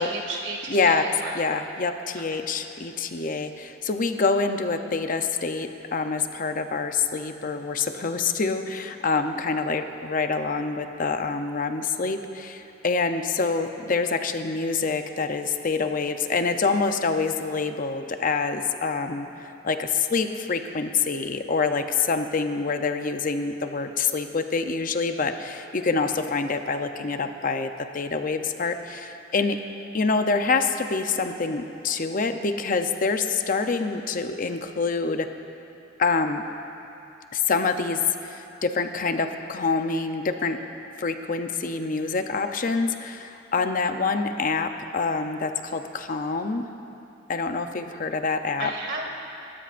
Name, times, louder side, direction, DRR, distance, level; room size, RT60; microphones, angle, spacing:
voice 1, 0.0-1.3 48.6-49.1, right 2 dB, 70° right, -1 dB, 2.4 m, -33 dB
voice 2, 0.7-1.0 1.3-29.6 29.9-35.3 36.0-36.4 37.3-40.6 41.0-46.7 47.3-48.7, left 4 dB, 45° left, 7 dB, 0.7 m, -26 dB
28.5 x 14.0 x 2.6 m, 2.8 s
head